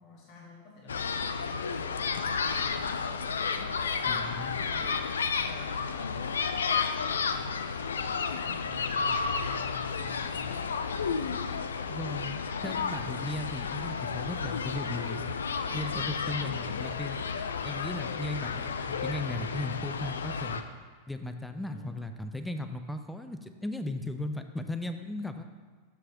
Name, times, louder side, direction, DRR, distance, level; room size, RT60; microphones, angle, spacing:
voice 1, 0.0-3.1 3.5-4.9 5.5-6.3 6.8-10.9 18.4-18.7 21.7-22.1, left 2 dB, 45° left, -2 dB, 1.3 m, -49 dB
sound 1, 0.9-20.6, left 5 dB, 70° left, 0.4 m, -32 dB
voice 2, 4.1-4.5 11.9-15.2 15.7-17.2 17.6-20.6 21.1-25.5, left 2 dB, 5° left, 7 dB, 0.5 m, -36 dB
12.5 x 4.7 x 3.0 m, 1.5 s
figure-of-eight pair, 90°, 0 cm